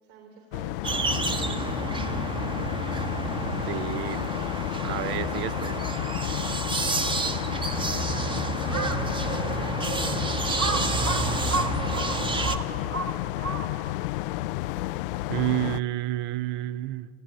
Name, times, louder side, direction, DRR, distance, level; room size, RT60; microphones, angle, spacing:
voice 1, 0.0-2.5 8.6-10.3 10.7-13.3, right 8 dB, 50° right, 3.7 m, -43 dB
sound 1, 0.5-15.8, left 17 dB, 45° left, 0.4 m, -32 dB
sound 2, 0.8-12.6, right 3 dB, 10° right, 1.0 m, -30 dB
voice 2, 3.7-4.3 4.8-5.8 15.3-17.1, right 15 dB, 30° right, 0.5 m, -30 dB
Crow, 8.6-9.1 9.7-9.8 10.6-14.0, right 3 dB, 90° right, 1.7 m, -31 dB
22.5 x 15.0 x 9.7 m
figure-of-eight pair, 90°, 41 cm